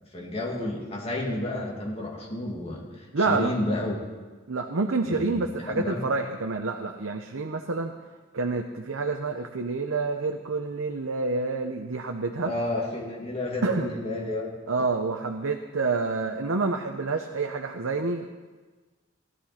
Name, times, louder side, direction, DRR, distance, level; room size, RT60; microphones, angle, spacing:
voice 1, 0.1-4.0 5.0-5.4 5.7-6.0 12.4-14.5, left 1 dB, 30° left, -3 dB, 2.5 m, -31 dB
voice 2, 3.1-3.5 4.5-7.9 8.3-12.5 13.6-13.9 14.7-18.3, right 3 dB, 90° right, 4 dB, 0.8 m, -28 dB
16.5 x 12.5 x 4.3 m, 1.3 s
head